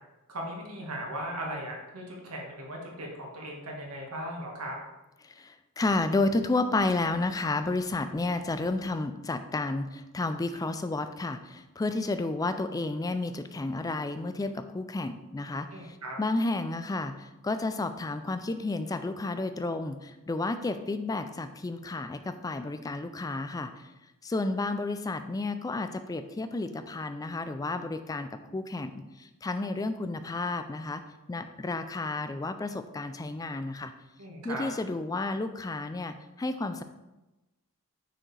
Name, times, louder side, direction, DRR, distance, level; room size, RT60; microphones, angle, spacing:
voice 1, 0.3-4.8 15.7-16.2 34.2-34.7, right 1 dB, 80° right, 0 dB, 1.5 m, -38 dB
voice 2, 5.2-23.9 24.2-31.0 31.3-33.9 34.4-36.8, left 2 dB, 15° left, 9 dB, 0.3 m, -31 dB
6.0 x 4.7 x 3.3 m, 1.0 s
head